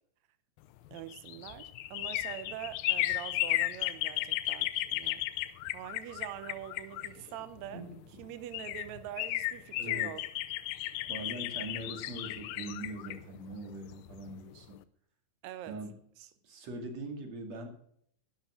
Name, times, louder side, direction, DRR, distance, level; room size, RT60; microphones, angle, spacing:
sound 1, 0.9-7.7 8.2-8.3 8.5-14.3 14.6-14.7, left 15 dB, 80° left, 2.4 m, -34 dB
voice 1, 0.9-5.2 5.7-7.9 8.2-10.2 15.4-15.8 16.2-16.3, right 12 dB, 80° right, 1.6 m, -44 dB
voice 2, 9.7-10.1 11.1-14.8 15.7-15.9 16.4-17.7, right 2 dB, 50° right, 3.3 m, -42 dB
12.0 x 9.4 x 6.2 m
omnidirectional pair, 4.2 m